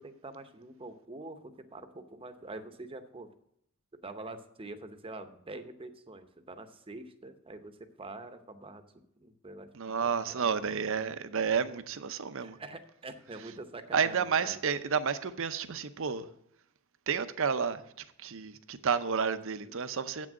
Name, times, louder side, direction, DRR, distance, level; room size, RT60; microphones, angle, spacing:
voice 1, 0.0-3.3 4.0-8.8 9.2-9.9 10.3-10.5 12.4-14.6 19.6-19.8, right 2 dB, 25° right, 0.8 m, -45 dB
voice 2, 9.7-12.6 13.9-16.3 17.1-17.8 18.2-20.3, right 6 dB, 60° right, 0.7 m, -31 dB
8.1 x 6.2 x 7.5 m
head